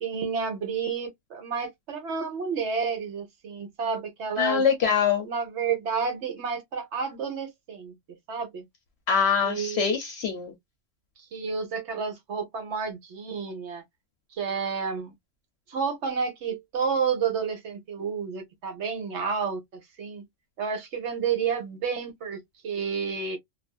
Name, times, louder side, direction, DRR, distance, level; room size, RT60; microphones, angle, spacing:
voice 1, 0.0-4.6 5.2-7.9 8.3-8.6 9.4-10.0 11.3-13.8 14.3-15.1 15.7-20.2 20.6-23.4, right 5 dB, 65° right, 1.1 m, -30 dB
voice 2, 4.4-5.3 9.1-10.5, left 7 dB, 65° left, 0.8 m, -24 dB
2.5 x 2.4 x 2.2 m
omnidirectional pair, 1.3 m